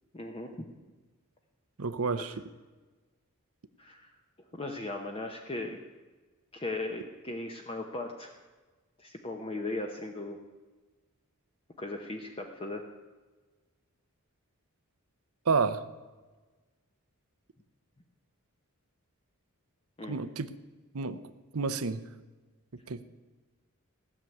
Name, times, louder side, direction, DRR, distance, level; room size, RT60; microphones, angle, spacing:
voice 1, 0.1-0.7 2.2-2.3 3.8-4.1 4.5-5.8 6.5-8.4 9.0-10.4 11.8-12.9 20.0-20.2, left 2 dB, 25° left, 3 dB, 0.9 m, -37 dB
voice 2, 1.8-2.3 15.4-15.8 20.1-20.5 20.9-21.2 21.5-22.0 22.9-23.0, right 4 dB, 70° right, 12 dB, 0.8 m, -29 dB
16.0 x 7.0 x 9.2 m, 1.3 s
head